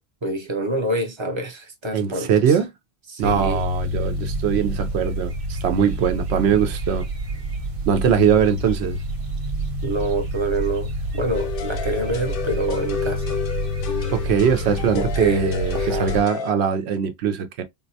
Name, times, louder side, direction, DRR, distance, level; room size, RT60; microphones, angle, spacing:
voice 1, 0.2-2.5 3.1-3.6 9.8-13.4 14.9-16.1, right 2 dB, 35° right, 0.5 m, -26 dB
voice 2, 1.9-2.7 3.2-7.1 7.9-9.0 14.1-17.6, right 7 dB, 90° right, 0.9 m, -21 dB
sound 1, 3.2-16.2, equal, 60° right, 1.1 m, -28 dB
sound 2, 11.3-16.5, left 6 dB, 65° left, 0.7 m, -31 dB
3.7 x 2.1 x 2.6 m
omnidirectional pair, 1.0 m